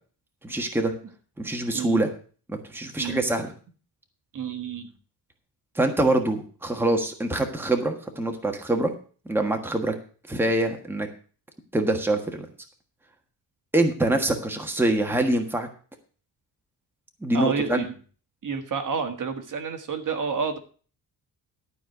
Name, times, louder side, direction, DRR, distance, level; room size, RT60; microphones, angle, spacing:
voice 1, 0.4-0.9 1.4-2.1 2.5-3.5 5.7-8.9 9.3-9.9 10.3-11.1 11.7-12.4 13.7-15.7 17.2-17.9, right 1 dB, 5° right, 3 dB, 1.5 m, -24 dB
voice 2, 4.3-4.9 17.3-17.9 18.4-20.6, right 5 dB, 50° right, 6 dB, 1.6 m, -29 dB
12.5 x 4.5 x 7.8 m, 0.40 s
cardioid pair, 130°, 40 cm